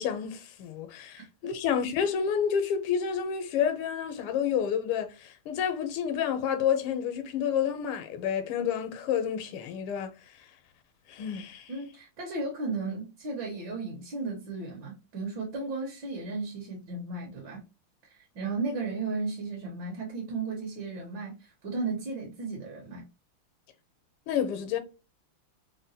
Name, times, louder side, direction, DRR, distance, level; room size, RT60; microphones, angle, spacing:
voice 1, 0.0-10.1 11.1-11.7 24.3-24.8, left 8 dB, 80° left, 1.5 m, -29 dB
voice 2, 1.2-1.5 11.7-17.6 18.1-23.0, right 3 dB, 65° right, 1.5 m, -35 dB
4.0 x 2.1 x 2.6 m
omnidirectional pair, 2.4 m